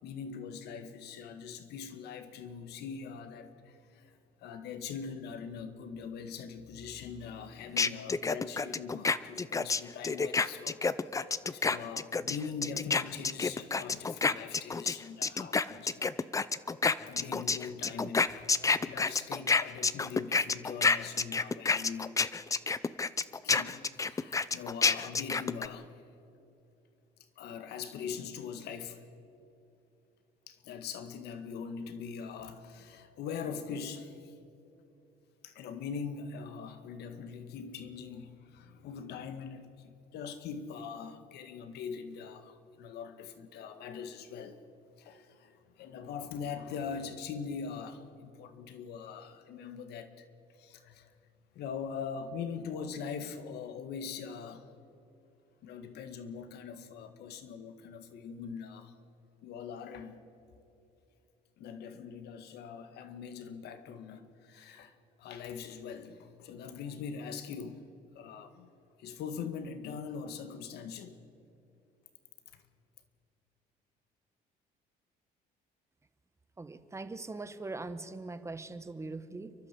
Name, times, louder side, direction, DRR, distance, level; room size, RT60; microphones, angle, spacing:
voice 1, 0.0-4.1 4.4-10.8 11.1-16.3 17.1-18.5 18.8-22.1 23.3-25.9 27.4-29.0 30.5-34.3 35.4-44.6 45.0-50.3 50.6-51.1 51.5-54.6 55.6-58.9 59.4-60.3 61.6-67.8 68.1-68.7 69.0-71.2 72.5-72.6, left 6 dB, 75° left, 10 dB, 1.7 m, -42 dB
sound 1, 7.8-15.0 15.2-25.7, left 4 dB, 20° left, 0.6 m, -28 dB
voice 2, 76.6-79.5, right 3 dB, 15° right, 11 dB, 1.2 m, -41 dB
30.0 x 11.5 x 7.7 m, 2.7 s
cardioid pair, 110°, 17 cm